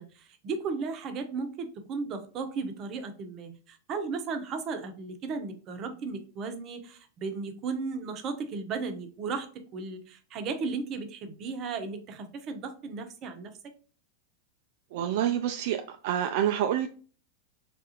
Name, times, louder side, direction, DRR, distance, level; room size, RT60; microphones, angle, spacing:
voice 1, 0.0-13.5, right 4 dB, 40° right, 6 dB, 0.7 m, -35 dB
voice 2, 14.9-16.9, right 10 dB, 65° right, 5 dB, 0.3 m, -27 dB
3.4 x 2.4 x 2.8 m, 0.39 s
hypercardioid pair, 120°, 0 cm